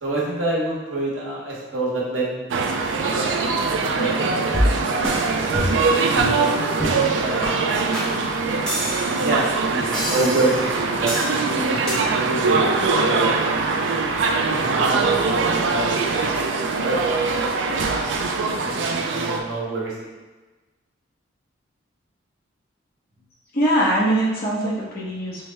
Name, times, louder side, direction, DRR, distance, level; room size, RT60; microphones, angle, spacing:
voice 1, 0.0-4.7 5.4-5.8 7.1-7.8 9.2-13.5 14.5-16.0 16.8-19.9, right 2 dB, 90° right, -4 dB, 1.1 m, -28 dB
sound 1, 2.5-19.4, right 4 dB, 70° right, 0.4 m, -22 dB
sound 2, 4.5-5.2 5.5-5.9 6.2-6.4 6.8-7.1 7.4-7.5 7.9-8.1 8.7-9.3 9.9-10.6 11.1-11.4 11.9-12.0, equal, 5° left, 0.7 m, -25 dB
voice 2, 23.5-25.5, right 1 dB, 50° left, -5 dB, 0.9 m, -22 dB
5.7 x 2.1 x 3.3 m, 1.2 s
head